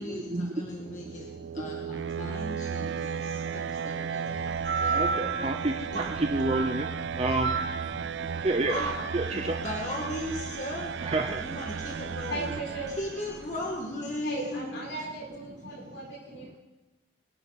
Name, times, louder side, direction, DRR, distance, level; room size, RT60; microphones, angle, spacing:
voice 1, 0.0-5.5 5.9-6.0 8.7-8.9 9.2-10.9 11.4-12.7 13.0-14.8, left 1 dB, 40° left, -2 dB, 1.9 m, -38 dB
sound 1, 0.7-13.5, right 6 dB, 65° right, 0.4 m, -35 dB
sound 2, 4.5-13.7, right 4 dB, 85° right, 2.9 m, -34 dB
voice 2, 4.9-5.7 6.3-6.9 7.2-7.5 8.4-8.8 9.1-9.2 11.0-11.4, right 2 dB, 30° right, 4 dB, 0.7 m, -28 dB
voice 3, 12.3-12.9 14.2-16.6, right 2 dB, 70° left, -2 dB, 5.1 m, -37 dB
23.0 x 11.0 x 4.2 m, 1.1 s
head